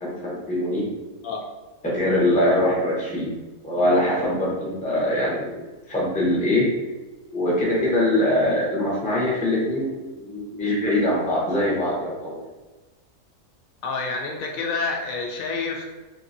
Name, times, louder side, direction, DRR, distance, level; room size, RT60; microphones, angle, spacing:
voice 1, 0.0-0.9 1.8-3.3 3.6-5.5 5.9-6.7 7.3-12.4, left 1 dB, 10° left, -5 dB, 0.5 m, -23 dB
voice 2, 13.8-15.9, left 4 dB, 75° left, 1 dB, 1.0 m, -28 dB
3.3 x 2.7 x 2.6 m, 1.2 s
omnidirectional pair, 1.5 m